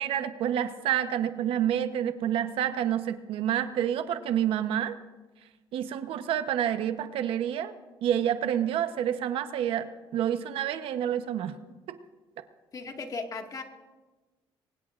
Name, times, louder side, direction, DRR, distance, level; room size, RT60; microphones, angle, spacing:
voice 1, 0.0-5.0 5.7-7.7 8.0-11.6 11.9-12.0, right 10 dB, 80° right, 10 dB, 0.9 m, -28 dB
voice 2, 12.7-13.6, left 4 dB, 40° left, 3 dB, 1.9 m, -36 dB
23.5 x 20.0 x 2.5 m, 1.2 s
cardioid pair, 100°, 9 cm